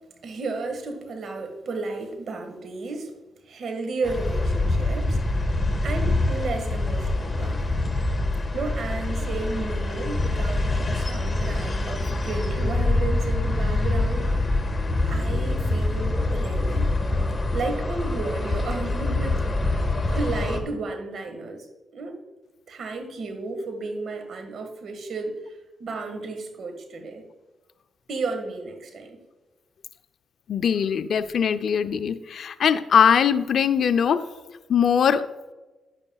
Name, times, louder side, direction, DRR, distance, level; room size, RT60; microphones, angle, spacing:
voice 1, 0.2-3.1 3.5-5.2 5.8-7.7 8.5-14.3 15.1-16.9 17.5-21.7 21.9-22.2 22.7-27.2 28.1-29.2, right 3 dB, 65° right, 6 dB, 1.7 m, -33 dB
sound 1, 4.0-20.6, left 2 dB, 25° left, 1.5 m, -25 dB
voice 2, 30.5-34.2 34.7-35.2, left 7 dB, 65° left, 11 dB, 0.5 m, -21 dB
10.5 x 9.6 x 2.4 m, 1.2 s
supercardioid pair, 60°, 0 cm